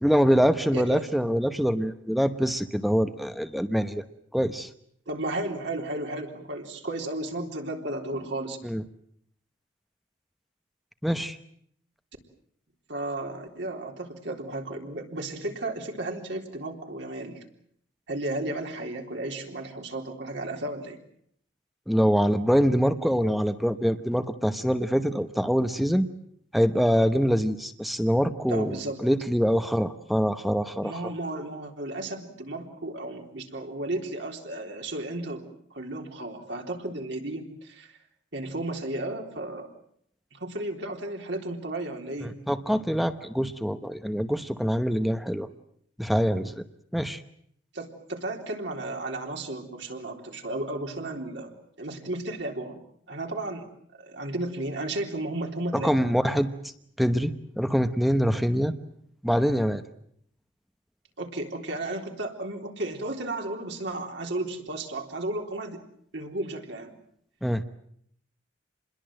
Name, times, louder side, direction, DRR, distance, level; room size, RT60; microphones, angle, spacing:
voice 1, 0.0-4.0 4.3-4.7 8.6-8.8 11.0-11.4 21.9-26.1 26.5-31.0 42.2-45.5 46.0-46.6 46.9-47.2 55.7-56.5 57.0-58.7 59.2-59.8 67.4-67.6, equal, ahead, 9 dB, 1.0 m, -24 dB
voice 2, 0.7-1.0 5.1-8.6 12.9-17.4 18.1-21.0 28.5-29.0 30.8-35.4 35.7-37.9 38.3-39.7 40.3-42.4 47.7-52.8 53.1-53.7 54.0-55.9 61.2-65.8 66.1-66.9, right 2 dB, 65° right, 2 dB, 3.7 m, -34 dB
27.5 x 21.5 x 7.7 m, 0.68 s
head